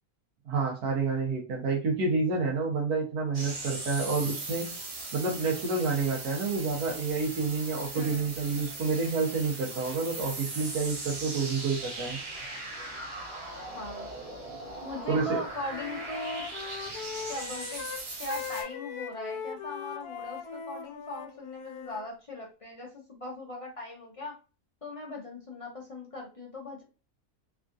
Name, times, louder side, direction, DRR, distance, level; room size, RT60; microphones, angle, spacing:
voice 1, 0.4-4.7 5.1-12.2 15.1-15.4, right 4 dB, 90° right, -1 dB, 1.4 m, -29 dB
sound 1, 3.3-18.6, right 2 dB, 65° right, 1.4 m, -39 dB
voice 2, 7.9-8.3 13.7-14.1 14.8-16.5 17.3-17.8 18.2-24.4 24.8-26.8, left 1 dB, 40° left, -1 dB, 0.5 m, -39 dB
Wind instrument woodwind instrument, 14.8-15.2 15.5-22.1, left 6 dB, 85° left, 1.1 m, -40 dB
3.6 x 2.3 x 2.5 m, 0.33 s
omnidirectional pair, 1.6 m